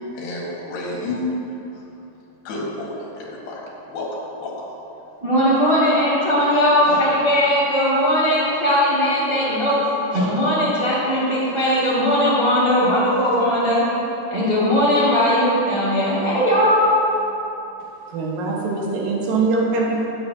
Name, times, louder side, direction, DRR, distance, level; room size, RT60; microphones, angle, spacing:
voice 1, 0.1-1.4 1.7-1.8 2.5-3.6 3.9-4.5, left 2 dB, 90° left, -4 dB, 3.6 m, -30 dB
voice 2, 5.2-9.8 10.1-13.8 14.3-17.0, equal, 15° right, -11 dB, 1.6 m, -18 dB
voice 3, 18.1-20.0, right 3 dB, 80° right, -3 dB, 3.1 m, -22 dB
16.5 x 7.4 x 2.8 m, 3.0 s
omnidirectional pair, 4.0 m